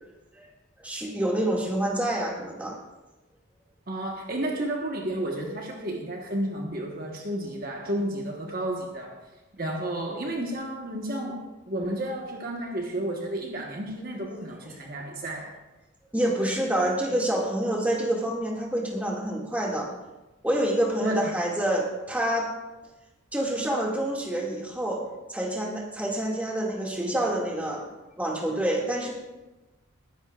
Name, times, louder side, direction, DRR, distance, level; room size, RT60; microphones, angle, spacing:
voice 1, 0.8-2.8 14.9-15.0 16.1-19.9 20.4-22.5 23.3-25.0 25.3-27.8 28.2-29.1, right 1 dB, 5° right, -3 dB, 2.1 m, -27 dB
voice 2, 3.9-9.2 9.5-15.6 21.0-21.3, right 1 dB, 45° right, 0 dB, 1.3 m, -32 dB
20.5 x 10.5 x 2.4 m, 1.1 s
head